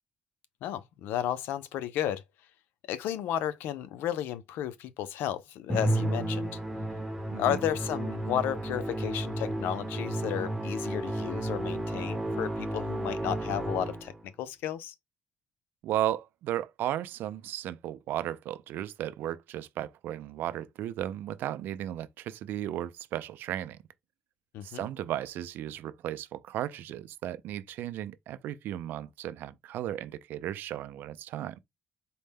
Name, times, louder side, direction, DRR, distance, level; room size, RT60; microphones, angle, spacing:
voice 1, 0.6-2.2 2.9-6.6 7.3-14.1 14.4-14.9 24.5-24.9, left 11 dB, 85° left, 0.4 m, -33 dB
Musical instrument, 5.7-14.2, right 1 dB, 10° right, 0.9 m, -32 dB
voice 2, 7.3-7.6 15.8-23.8 24.6-31.6, right 12 dB, 75° right, 0.4 m, -35 dB
4.1 x 2.1 x 3.4 m
cardioid pair, 90°, 3 cm